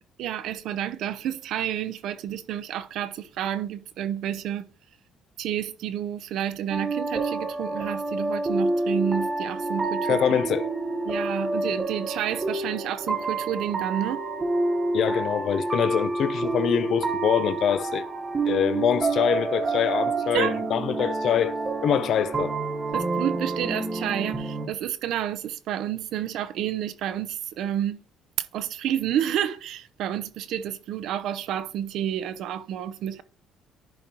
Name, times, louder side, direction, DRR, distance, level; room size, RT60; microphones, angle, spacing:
voice 1, 0.2-4.7 5.4-10.4 11.1-14.3 20.3-20.6 22.9-28.0 28.5-33.2, right 10 dB, 75° right, 0.6 m, -30 dB
sound 1, 6.7-24.7, right 3 dB, 25° right, 1.1 m, -28 dB
voice 2, 10.1-10.7 14.9-18.0 18.5-21.6 21.8-22.5, left 9 dB, 55° left, 0.6 m, -24 dB
10.5 x 5.2 x 2.9 m
cardioid pair, 135°, 0 cm